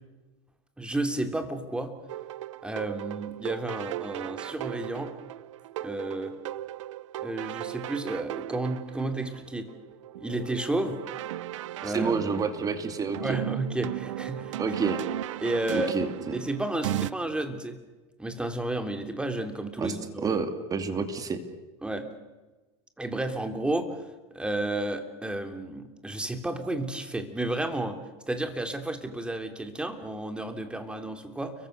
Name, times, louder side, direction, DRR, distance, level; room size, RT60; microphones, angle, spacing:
voice 1, 0.8-2.0 2.6-5.1 5.8-6.4 7.2-9.7 10.2-11.0 11.8-12.1 13.2-14.6 15.4-16.0 16.3-17.8 18.2-20.4 21.8-22.1 23.0-24.0 24.3-28.0 28.3-31.5, right 2 dB, 5° right, 6 dB, 3.1 m, -32 dB
sound 1, 2.1-17.1, right 13 dB, 90° right, 0.8 m, -37 dB
voice 2, 11.8-13.4 14.6-15.0 15.7-16.4 19.8-21.4, right 5 dB, 25° right, 8 dB, 2.6 m, -29 dB
30.0 x 23.0 x 6.7 m, 1.2 s
supercardioid pair, 135°, 15 cm